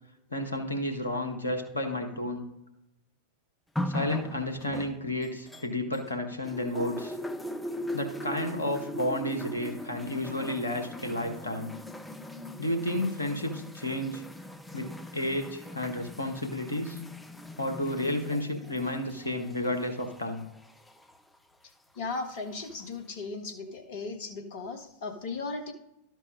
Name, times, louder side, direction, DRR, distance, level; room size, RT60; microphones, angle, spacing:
voice 1, 0.3-2.5 3.9-7.1 7.9-11.7 12.6-14.2 14.7-17.0 17.6-20.4, left 1 dB, 80° left, 4 dB, 1.4 m, -31 dB
sound 1, 3.8-6.1 6.4-21.2 22.1-22.2, left 1 dB, 5° left, 0.6 m, -40 dB
voice 2, 21.9-25.7, left 3 dB, 50° left, 5 dB, 1.5 m, -36 dB
12.0 x 4.5 x 5.3 m, 0.89 s
figure-of-eight pair, 90°, 0 cm